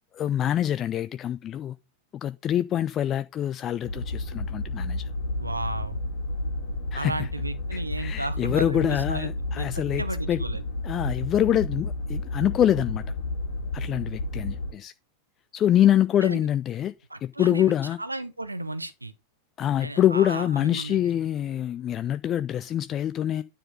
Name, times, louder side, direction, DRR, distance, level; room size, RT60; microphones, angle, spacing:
voice 1, 0.1-1.8 2.1-5.1 6.9-7.3 7.7-10.0 10.3-10.4 10.8-13.0 13.7-14.9 15.5-16.9 17.2-18.0 19.6-23.4, left 11 dB, 30° left, 0.3 m, -25 dB
sound 1, 3.8-14.7, left 2 dB, 55° left, 2.3 m, -31 dB
voice 2, 5.4-6.0 6.9-10.6 16.2-16.5 17.1-19.1 19.8-21.0, right 2 dB, 85° right, 0.8 m, -34 dB
9.9 x 4.2 x 5.2 m
figure-of-eight pair, 90°, 0 cm